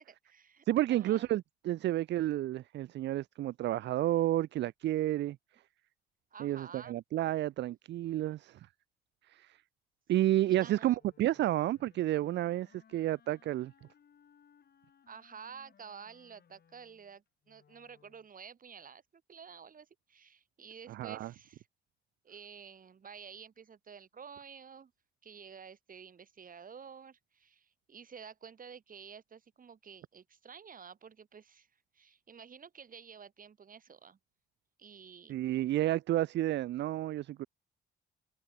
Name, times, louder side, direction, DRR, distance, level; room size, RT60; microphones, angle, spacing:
voice 1, 0.0-1.3 6.3-7.0 10.5-11.0 15.1-21.7 22.2-24.9 25.2-31.7 31.9-34.2 34.8-35.6, right 6 dB, 45° right, 3.6 m, -51 dB
voice 2, 0.7-5.4 6.4-8.7 9.3-9.6 10.1-13.7 20.9-21.3 35.3-37.5, right 14 dB, 65° right, 0.4 m, -31 dB
Wind instrument woodwind instrument, 10.9-18.3, left 7 dB, 50° left, 5.1 m, -65 dB
cardioid pair, 90°, 20 cm